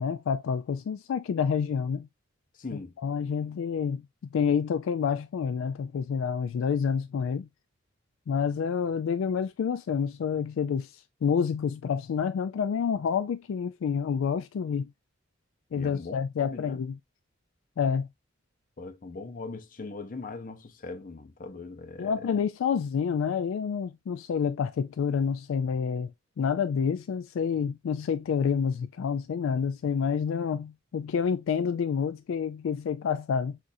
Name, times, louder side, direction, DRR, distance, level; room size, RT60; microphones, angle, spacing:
voice 1, 0.0-2.1 3.0-4.0 4.3-7.5 8.3-10.9 11.2-14.9 15.7-16.9 17.8-18.1 22.0-26.1 26.4-33.6, left 6 dB, 70° left, 0.3 m, -28 dB
voice 2, 2.5-3.0 15.7-16.8 18.8-22.4, left 3 dB, 40° left, 0.6 m, -40 dB
6.3 x 2.5 x 2.6 m
head